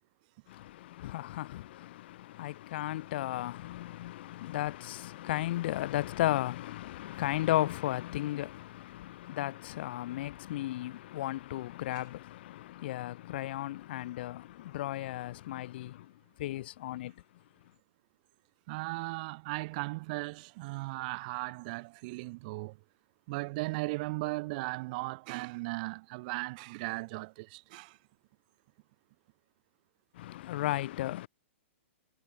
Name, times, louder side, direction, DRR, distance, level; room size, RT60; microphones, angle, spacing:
voice 1, 0.5-16.1 16.4-17.1 30.1-31.3, left 15 dB, 50° left, 1.6 m, -35 dB
voice 2, 18.7-22.8 23.3-28.0, right 24 dB, 40° right, 0.9 m, -37 dB
hypercardioid pair, 155°, 7 cm